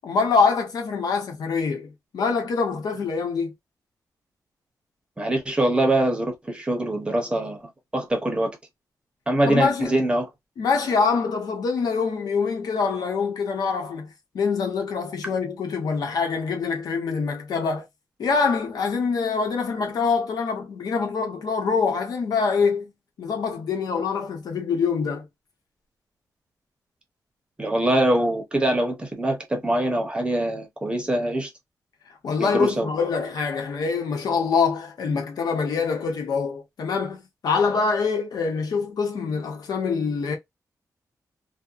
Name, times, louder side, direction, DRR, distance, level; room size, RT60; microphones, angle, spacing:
voice 1, 0.0-3.5 9.5-9.9 10.6-17.9 18.2-22.9 23.2-25.2 32.2-40.3, left 5 dB, 85° left, 0.9 m, -25 dB
voice 2, 5.2-7.6 7.9-8.6 9.3-10.3 15.3-15.4 27.6-31.5 32.4-32.9, right 1 dB, 15° right, 0.8 m, -23 dB
2.7 x 2.2 x 2.3 m
wide cardioid pair, 145°, 6 cm